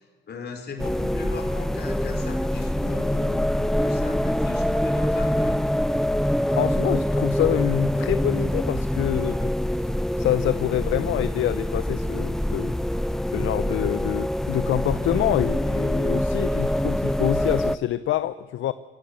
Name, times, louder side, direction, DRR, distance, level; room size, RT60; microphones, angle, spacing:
voice 1, 0.0-5.6, left 4 dB, 55° left, 4.4 m, -38 dB
sound 1, 0.8-17.8, equal, ahead, 0.5 m, -25 dB
voice 2, 6.5-9.9 10.2-12.8 13.3-18.7, left 12 dB, 75° left, 0.7 m, -26 dB
22.5 x 16.0 x 8.2 m
cardioid pair, 90°, 20 cm